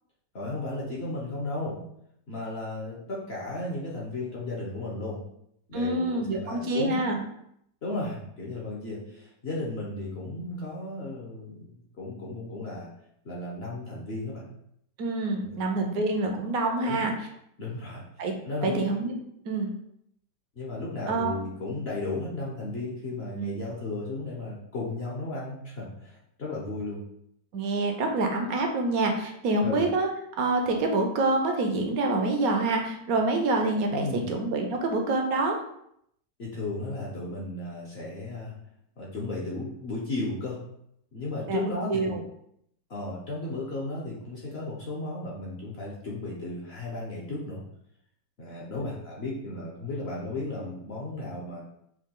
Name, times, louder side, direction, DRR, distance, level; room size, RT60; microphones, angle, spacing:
voice 1, 0.3-1.8 2.3-5.2 5.7-7.0 7.8-12.9 13.2-14.4 15.4-15.6 16.8-17.0 17.6-18.0 18.4-18.8 20.6-27.0 29.6-29.9 33.9-34.3 36.4-38.5 39.0-40.6 41.1-42.1 42.9-47.6 48.4-51.6, left 2 dB, 50° left, -4 dB, 0.8 m, -34 dB
voice 2, 5.7-7.2 15.0-17.3 18.2-18.3 18.6-19.1 19.4-19.7 21.1-21.3 23.3-23.5 27.5-30.1 30.4-35.6 41.5-41.6 41.9-42.2, right 2 dB, 65° right, 3 dB, 1.0 m, -26 dB
4.8 x 2.3 x 3.7 m, 0.73 s
omnidirectional pair, 1.9 m